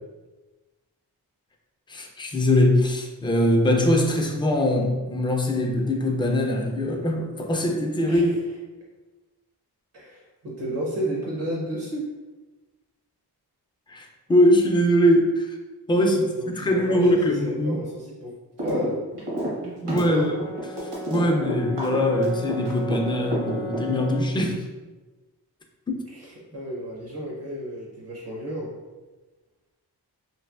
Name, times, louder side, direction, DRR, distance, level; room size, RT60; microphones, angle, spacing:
voice 1, 1.9-8.4 13.9-15.6 15.9-16.2 16.5-17.8 19.6-20.4 20.8-24.6 25.9-26.0, left 1 dB, 15° left, 2 dB, 0.4 m, -22 dB
voice 2, 8.0-8.4 9.9-12.1 16.0-19.0 20.0-20.3 26.1-28.7, equal, 70° right, -4 dB, 0.8 m, -32 dB
sound 1, 18.6-18.9 19.1-23.0 23.3-24.2, right 1 dB, 85° right, 1.3 m, -29 dB
Brass instrument, 20.1-24.4, left 1 dB, 65° left, 0.7 m, -36 dB
3.2 x 2.6 x 2.4 m, 1.2 s
cardioid pair, 80°, 40 cm